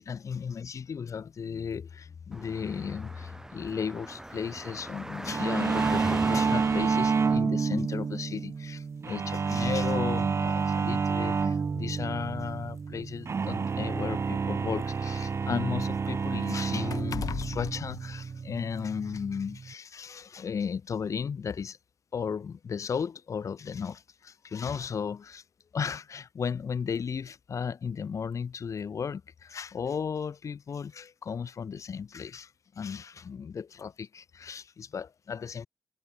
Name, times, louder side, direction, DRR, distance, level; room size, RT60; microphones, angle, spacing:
voice 1, 0.0-21.8 22.1-25.4 25.7-35.7, left 6 dB, 60° left, 1.5 m, -35 dB
Car / Traffic noise roadway noise, 2.3-7.4, right 1 dB, 10° right, 2.9 m, -37 dB
sound 1, 5.3-19.7, right 5 dB, 50° right, 1.0 m, -29 dB
sound 2, 10.1-10.3 11.3-11.4 11.9-12.0 12.9-14.9 15.3-18.7 19.1-19.3, left 8 dB, 80° left, 3.3 m, -41 dB
cardioid pair, 75°, 6 cm